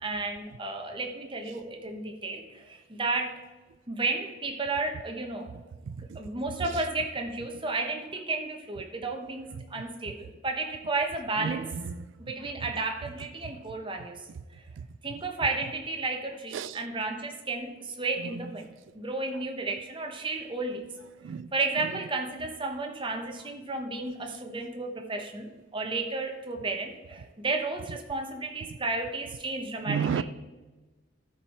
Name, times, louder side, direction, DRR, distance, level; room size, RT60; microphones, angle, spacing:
voice 1, 0.0-3.4 3.9-5.5 6.0-11.7 12.2-14.7 15.0-18.7 18.9-20.9 21.5-30.2, right 3 dB, 25° right, 0.9 m, -33 dB
voice 2, 5.8-6.2 6.6-6.8 10.1-10.2 11.4-12.1 14.4-14.5 14.8-14.9 16.5-16.8 18.2-18.5 21.2-21.5 29.9-30.2, right 6 dB, 70° right, 0.3 m, -33 dB
13.0 x 4.7 x 4.3 m
head